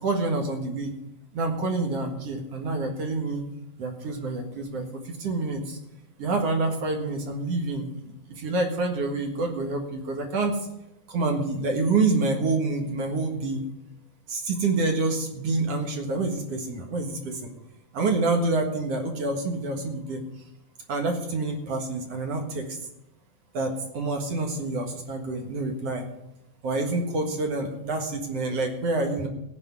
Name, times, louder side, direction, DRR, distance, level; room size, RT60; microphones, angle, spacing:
voice 1, 0.0-0.9 1.3-3.4 3.8-5.8 6.2-10.6 11.1-13.6 14.3-17.5 17.9-20.2 20.9-22.8 23.5-26.1 26.6-29.3, right 3 dB, 55° right, 3 dB, 2.5 m, -27 dB
16.0 x 5.5 x 9.6 m, 0.86 s
omnidirectional pair, 3.8 m